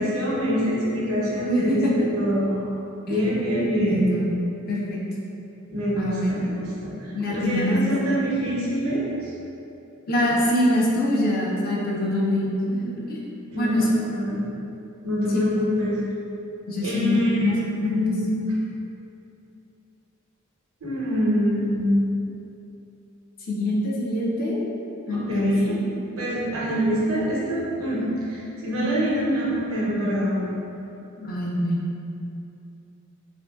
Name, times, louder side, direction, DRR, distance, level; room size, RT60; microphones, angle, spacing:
voice 1, 0.0-2.7 3.1-4.1 5.7-9.3 13.5-14.4 15.0-16.0 16.8-17.5 17.8-18.4 20.8-22.1 25.1-25.7 26.2-30.5, equal, 85° right, -6 dB, 0.8 m, -25 dB
voice 2, 1.5-2.1 3.1-3.2 3.8-4.3 4.7-5.0 6.0-6.5 7.1-7.9 10.1-13.2 13.5-13.9 16.7-18.0 23.5-24.7 25.1-25.9 31.2-32.0, left 1 dB, 45° left, -4 dB, 0.4 m, -24 dB
2.9 x 2.5 x 2.2 m, 2.8 s
head